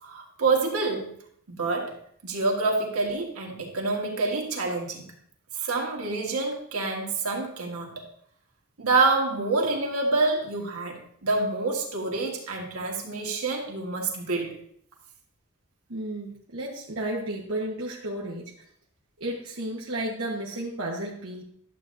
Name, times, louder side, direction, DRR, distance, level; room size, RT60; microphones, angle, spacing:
voice 1, 0.0-1.1 1.5-5.1 5.5-8.1 8.8-14.6, right 3 dB, 85° right, 0 dB, 1.7 m, -27 dB
voice 2, 15.9-18.5 19.2-21.4, right 1 dB, 70° right, -4 dB, 1.1 m, -33 dB
11.5 x 7.5 x 2.6 m, 0.67 s
head